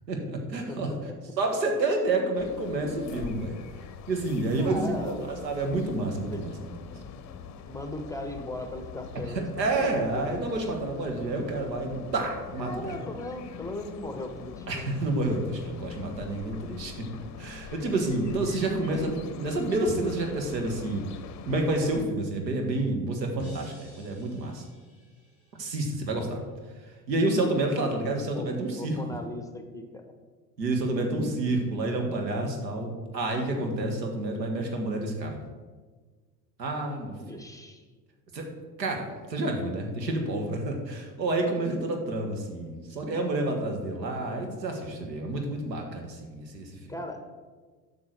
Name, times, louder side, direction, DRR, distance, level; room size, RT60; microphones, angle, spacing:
voice 1, 0.1-0.9 1.4-3.6 4.1-6.7 9.6-13.0 14.7-16.9 17.4-19.1 19.4-21.0 21.4-24.6 25.6-26.4 26.8-29.0 30.6-35.4 36.6-37.4 38.3-38.4 38.8-46.8, right 2 dB, 85° right, 3 dB, 1.6 m, -29 dB
sound 1, 2.4-22.0, left 7 dB, 35° left, 0.8 m, -44 dB
voice 2, 4.6-5.2 6.2-10.5 12.6-15.0 19.0-19.2 27.8-28.0 28.3-30.1 37.2-37.8 46.9-47.2, left 1 dB, 5° left, 5 dB, 0.9 m, -39 dB
sound 2, 23.4-26.5, left 1 dB, 30° right, 2.7 m, -50 dB
7.6 x 6.1 x 6.4 m, 1.4 s
hypercardioid pair, 75°, 50 cm